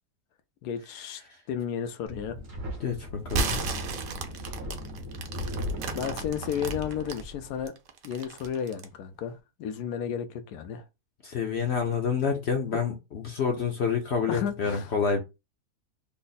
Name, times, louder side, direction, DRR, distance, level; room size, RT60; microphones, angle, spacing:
voice 1, 0.6-1.2 1.5-2.4 5.9-7.7 8.0-10.8 14.3-14.9, left 8 dB, 85° left, 1.2 m, -33 dB
Wind, 2.1-7.7, left 1 dB, 45° right, 1.1 m, -37 dB
voice 2, 2.8-3.6 11.2-15.2, left 6 dB, 60° left, 0.7 m, -28 dB
sound 1, 3.2-7.2 7.7-9.0, right 4 dB, 75° right, 0.5 m, -33 dB
3.4 x 2.1 x 3.9 m
omnidirectional pair, 1.7 m